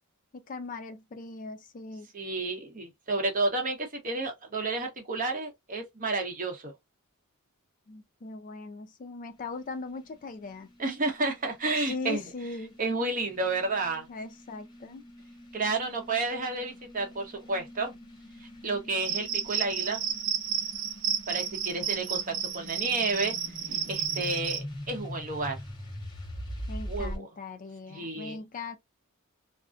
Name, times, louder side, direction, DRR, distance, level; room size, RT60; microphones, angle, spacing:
voice 1, 0.3-2.1 7.9-10.7 11.8-12.8 14.1-15.0 26.7-28.8, left 3 dB, 40° left, 0.4 m, -39 dB
voice 2, 2.1-6.7 10.8-12.3 12.8-14.1 15.5-17.9 18.6-20.0 21.3-23.4 23.9-25.6 26.9-27.3 27.9-28.4, right 3 dB, 40° right, 0.8 m, -31 dB
sound 1, 9.3-27.2, equal, 20° left, 1.0 m, -44 dB
Cricket, 19.0-24.6, right 9 dB, 60° right, 0.6 m, -32 dB
2.5 x 2.1 x 2.4 m
head